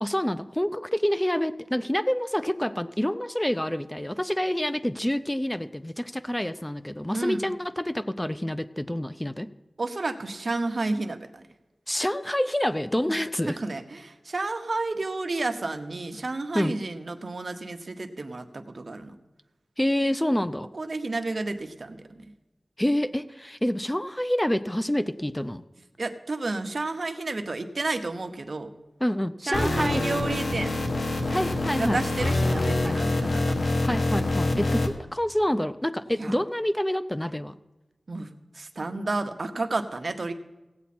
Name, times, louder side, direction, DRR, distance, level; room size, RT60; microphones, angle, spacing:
voice 1, 0.0-9.5 11.9-13.6 16.5-16.8 19.8-20.7 22.8-25.6 29.0-30.0 31.3-32.0 32.8-33.0 33.8-37.5, left 1 dB, 10° left, 12 dB, 0.4 m, -27 dB
voice 2, 7.1-7.5 9.8-11.4 13.1-13.2 13.5-19.1 20.7-22.2 26.0-28.7 29.5-30.8 31.8-33.7 36.2-36.3 38.1-38.3 38.5-40.3, right 3 dB, 55° right, 7 dB, 0.9 m, -31 dB
sound 1, 29.5-34.9, left 2 dB, 75° left, 1.1 m, -26 dB
16.0 x 8.3 x 4.2 m, 1.1 s
wide cardioid pair, 80°, 0 cm